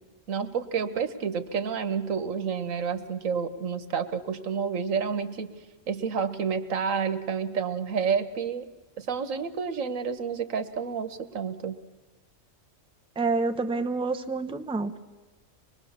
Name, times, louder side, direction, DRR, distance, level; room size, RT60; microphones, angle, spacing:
voice 1, 0.3-5.5 5.9-8.6 9.0-11.8, right 6 dB, 90° right, 11 dB, 1.5 m, -29 dB
voice 2, 13.2-15.0, right 3 dB, 5° right, 7 dB, 0.6 m, -28 dB
24.5 x 20.5 x 7.2 m, 1.2 s
omnidirectional pair, 1.3 m